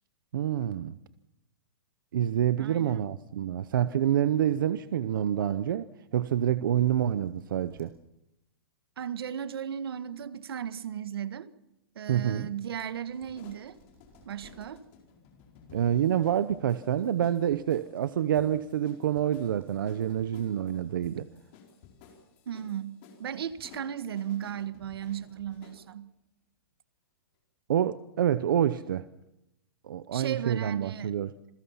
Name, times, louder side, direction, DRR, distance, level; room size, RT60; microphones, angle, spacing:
voice 1, 0.3-1.0 2.1-7.9 12.1-12.5 15.7-21.3 27.7-29.0 29.8-31.3, right 10 dB, 60° right, 0.8 m, -27 dB
voice 2, 2.6-3.1 9.0-11.5 11.9-13.8 14.2-14.8 22.4-26.1 30.1-31.2, right 9 dB, 75° right, 1.5 m, -36 dB
sound 1, 3.6-4.7 5.2-5.3 6.2-6.3 6.6-7.9 9.2-9.4 9.8-10.8 11.2-14.7 17.0-17.2 17.4-17.5 17.9-18.0 19.1-19.2 19.6-19.7 20.1-20.2, right 5 dB, 15° right, 3.7 m, -64 dB
sound 2, 13.1-25.8, left 6 dB, 30° left, 4.6 m, -55 dB
27.5 x 22.0 x 5.7 m
hypercardioid pair, 180°, 13 cm